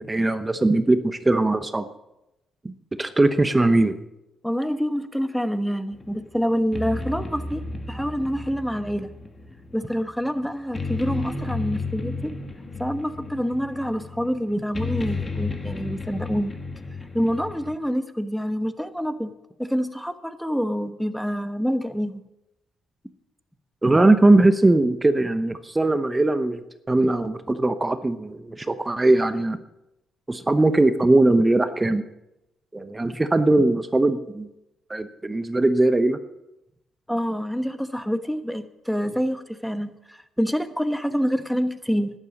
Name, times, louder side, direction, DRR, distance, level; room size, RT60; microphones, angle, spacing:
voice 1, 0.0-1.9 2.6-2.7 3.0-3.9 23.8-29.6 30.3-32.0 32.7-34.5 34.9-36.2, right 2 dB, 15° right, 10 dB, 0.9 m, -20 dB
voice 2, 4.4-9.1 9.7-12.3 12.8-16.5 17.1-19.3 19.6-22.2 33.0-33.2 37.1-42.1, equal, ahead, 10 dB, 1.1 m, -27 dB
sound 1, 5.9-17.7, left 3 dB, 25° left, 1.9 m, -33 dB
11.5 x 10.0 x 7.3 m, 0.91 s
cardioid pair, 90°, 0 cm